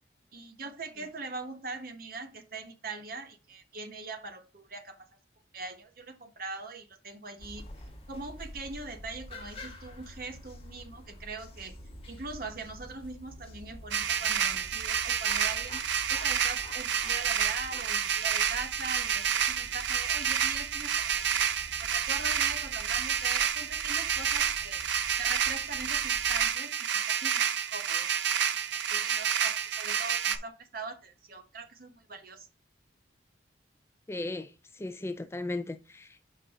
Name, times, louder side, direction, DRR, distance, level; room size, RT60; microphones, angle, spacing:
voice 1, 0.3-5.1 5.5-7.7 8.1-11.8 12.1-15.8 16.1-21.5 21.8-24.8 25.2-32.5, right 3 dB, 50° right, 1.2 m, -41 dB
sound 1, 7.4-26.5, left 1 dB, 30° left, 1.3 m, -47 dB
sound 2, 13.9-30.4, right 8 dB, 70° right, 0.6 m, -29 dB
voice 2, 34.1-34.5 34.8-36.2, left 2 dB, 15° left, 0.3 m, -36 dB
5.7 x 5.3 x 3.7 m
head